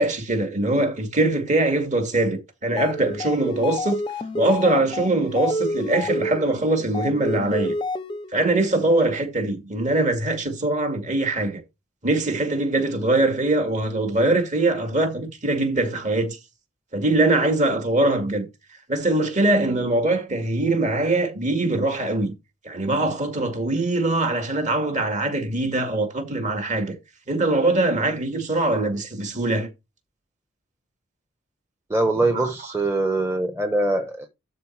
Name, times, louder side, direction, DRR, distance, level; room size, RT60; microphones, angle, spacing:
voice 1, 0.0-4.0 4.4-7.7 8.3-11.6 12.0-16.4 16.9-18.5 18.9-22.3 22.6-27.0 27.3-29.7 32.3-32.5, right 2 dB, 35° right, 2.2 m, -22 dB
sound 1, 2.6-8.4, left 1 dB, 20° left, 0.6 m, -29 dB
voice 2, 31.9-34.3, right 2 dB, 10° right, 1.1 m, -23 dB
12.5 x 4.2 x 4.7 m
head